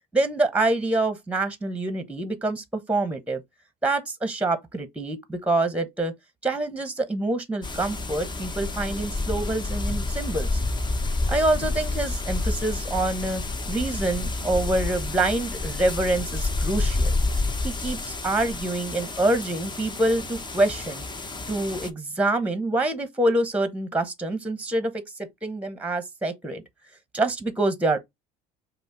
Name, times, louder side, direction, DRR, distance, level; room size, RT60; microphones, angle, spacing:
voice 1, 0.1-3.4 3.8-6.1 6.4-10.6 11.3-13.4 13.7-17.1 17.6-21.0 21.5-25.0 25.4-26.6 27.1-28.0, right 2 dB, 5° right, 1.0 m, -26 dB
sound 1, 7.6-21.9, left 2 dB, 25° left, 0.9 m, -29 dB
5.2 x 2.2 x 4.7 m
hypercardioid pair, 70°, 18 cm